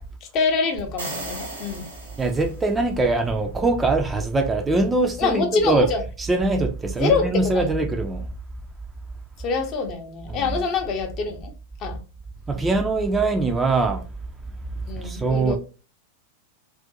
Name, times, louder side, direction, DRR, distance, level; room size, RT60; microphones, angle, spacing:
voice 1, 0.3-1.9 5.2-6.0 7.0-7.3 7.5-7.7 9.4-11.5 11.8-12.0 14.9-15.6, left 4 dB, 35° left, 0.6 m, -25 dB
sound 1, 0.8-2.9, right 2 dB, 75° right, 1.1 m, -36 dB
voice 2, 2.2-5.9 6.2-8.3 10.3-10.6 12.5-14.0 14.9-15.6, right 3 dB, 15° right, 0.4 m, -22 dB
2.4 x 2.1 x 2.7 m
figure-of-eight pair, 90°, 0 cm